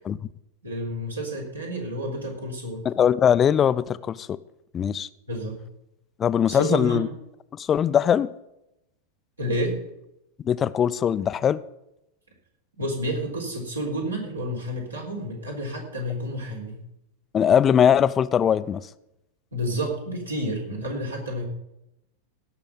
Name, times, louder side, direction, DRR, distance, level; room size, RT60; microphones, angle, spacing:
voice 1, 0.6-2.9 5.3-5.6 6.5-7.0 9.4-9.8 12.8-16.8 19.5-21.5, equal, 80° right, 3.7 m, -30 dB
voice 2, 2.8-4.4 4.7-5.1 6.2-7.1 7.5-8.3 10.4-11.6 17.3-18.9, left 8 dB, 25° left, 0.4 m, -21 dB
17.0 x 6.2 x 7.2 m
figure-of-eight pair, 90°, 0 cm